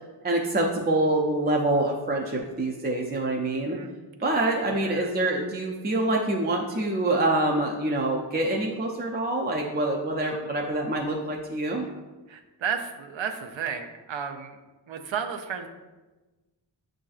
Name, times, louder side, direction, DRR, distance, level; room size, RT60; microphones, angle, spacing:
voice 1, 0.2-3.8 4.2-11.9, right 2 dB, 25° right, -1 dB, 0.4 m, -26 dB
voice 2, 3.5-3.9 4.7-5.1 10.2-10.4 11.8-11.9 12.3-14.6 14.9-15.7, right 7 dB, 80° right, 5 dB, 0.5 m, -33 dB
7.4 x 2.6 x 2.4 m, 1.2 s
wide cardioid pair, 100°, 45 cm